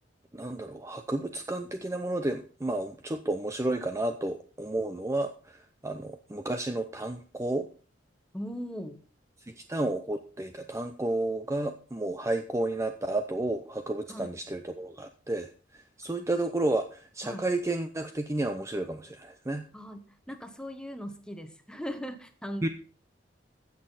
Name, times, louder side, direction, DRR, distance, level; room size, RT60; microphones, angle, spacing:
voice 1, 0.3-7.7 9.4-19.7 22.6-22.7, right 2 dB, 15° right, 7 dB, 0.6 m, -32 dB
voice 2, 8.3-9.0 14.1-14.3 16.1-16.3 17.2-17.5 19.7-22.7, equal, 5° left, 7 dB, 1.2 m, -39 dB
15.5 x 6.4 x 4.0 m, 0.39 s
head